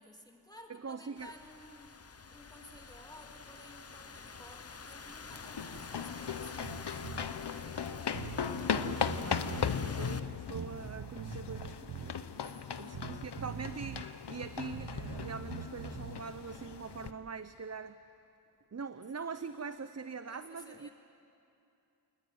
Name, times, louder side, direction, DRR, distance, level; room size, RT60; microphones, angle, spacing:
voice 1, 0.0-7.0 12.4-13.0 20.3-20.9, left 1 dB, 10° left, 1 dB, 2.8 m, -55 dB
voice 2, 0.7-1.3 8.8-12.2 12.8-18.0 18.7-20.9, right 5 dB, 40° right, 12 dB, 0.7 m, -43 dB
Thunderstorm / Rain, 1.2-10.2, left 5 dB, 40° left, 0.8 m, -47 dB
sound 1, 5.3-17.1, left 7 dB, 90° left, 1.0 m, -38 dB
Bass guitar, 6.6-7.3 7.8-7.9 8.1-9.8 10.5-12.2 12.9-14.1 14.3-16.2, right 10 dB, 85° right, 0.7 m, -44 dB
28.0 x 19.5 x 9.4 m, 2.7 s
wide cardioid pair, 75°, 39 cm